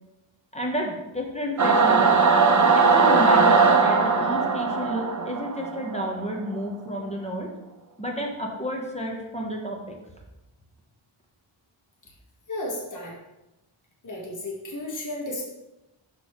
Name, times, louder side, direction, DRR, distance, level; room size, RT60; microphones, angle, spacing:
voice 1, 0.5-2.2 2.7-7.5 8.0-10.0, equal, 15° left, 0 dB, 1.1 m, -31 dB
Singing / Musical instrument, 1.6-6.2, right 4 dB, 35° right, 0.7 m, -19 dB
voice 2, 12.5-13.2 14.0-15.5, left 1 dB, 40° left, -2 dB, 1.4 m, -33 dB
6.6 x 6.1 x 3.2 m, 0.98 s
wide cardioid pair, 85°, 49 cm